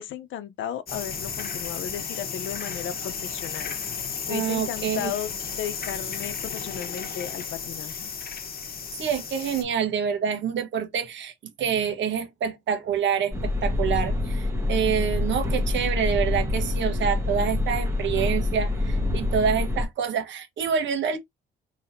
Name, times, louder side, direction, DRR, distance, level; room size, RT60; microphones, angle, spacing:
voice 1, 0.0-3.7 4.3-8.1, left 10 dB, 75° left, 0.7 m, -35 dB
sound 1, 0.9-9.6, left 6 dB, 50° left, 1.1 m, -34 dB
voice 2, 4.3-5.1 9.0-11.3 11.6-21.2, right 7 dB, 70° right, 1.2 m, -27 dB
sound 2, 13.3-19.8, left 2 dB, 15° right, 1.2 m, -26 dB
4.1 x 3.2 x 2.6 m
cardioid pair, 90°, 20 cm